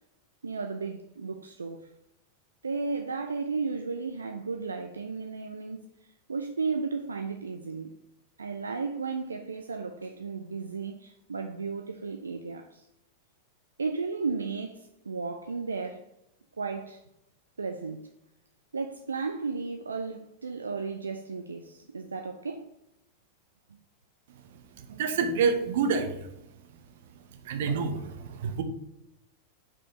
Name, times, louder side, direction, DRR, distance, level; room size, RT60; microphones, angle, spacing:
voice 1, 0.4-1.9 2.6-5.9 6.3-7.9 8.4-12.9 13.8-16.0 16.6-17.0 17.6-18.1 18.7-22.7, right 4 dB, 75° right, 0.4 m, -34 dB
voice 2, 24.8-26.3 27.4-28.6, right 5 dB, 55° right, 0.8 m, -28 dB
5.0 x 4.4 x 4.9 m
figure-of-eight pair, 90°, 0 cm